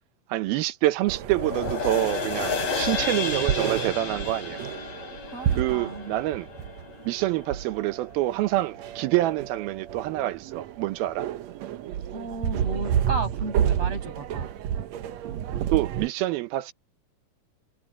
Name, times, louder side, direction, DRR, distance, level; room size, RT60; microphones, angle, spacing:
voice 1, 0.3-4.6 5.5-6.5 7.1-11.3 15.7-16.7, right 16 dB, 90° right, 2.8 m, -26 dB
sound 1, 1.1-16.1, right 9 dB, 75° right, 1.6 m, -31 dB
sound 2, 1.3-7.9 8.3-8.4, left 5 dB, 75° left, 5.6 m, -32 dB
voice 2, 5.3-6.2 12.1-14.5, right 3 dB, 45° right, 6.7 m, -34 dB
omnidirectional pair, 4.2 m